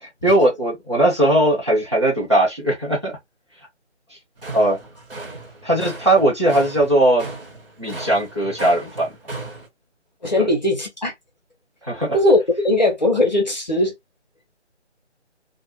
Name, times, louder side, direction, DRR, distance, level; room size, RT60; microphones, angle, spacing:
voice 1, 0.0-3.1 4.5-4.8 5.6-7.3 7.8-9.1 10.4-10.5 11.8-12.2, right 1 dB, 25° right, 0.7 m, -19 dB
sound 1, 4.4-9.7, right 2 dB, 50° right, 1.0 m, -36 dB
voice 2, 10.2-11.1 12.1-13.9, left 1 dB, 40° left, 0.7 m, -19 dB
2.4 x 2.1 x 2.9 m
figure-of-eight pair, 155°, 35 cm